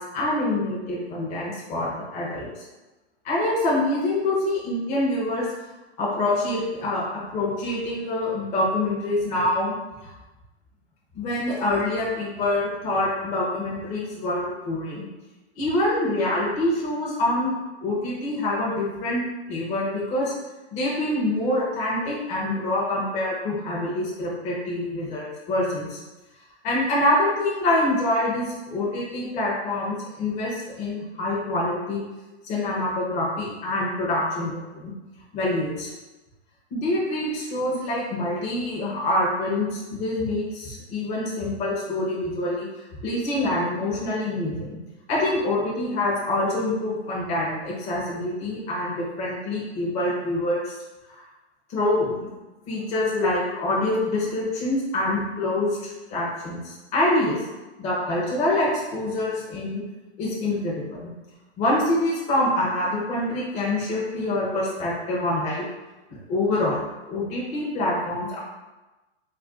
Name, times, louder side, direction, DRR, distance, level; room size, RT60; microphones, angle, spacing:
voice 1, 0.0-2.5 3.2-5.5 6.0-9.7 10.0-10.1 11.1-15.1 15.6-17.5 17.8-20.3 20.7-26.0 26.6-32.0 32.4-34.9 35.3-35.9 36.7-42.7 43.0-44.8 45.1-50.7 51.1-51.2 51.7-52.3 52.7-57.4 57.8-59.8 60.2-61.1 61.6-65.6 66.3-66.8 67.1-68.4, left 1 dB, 20° left, -5 dB, 0.5 m, -25 dB
2.4 x 2.2 x 3.6 m, 1.1 s
hypercardioid pair, 140°, 33 cm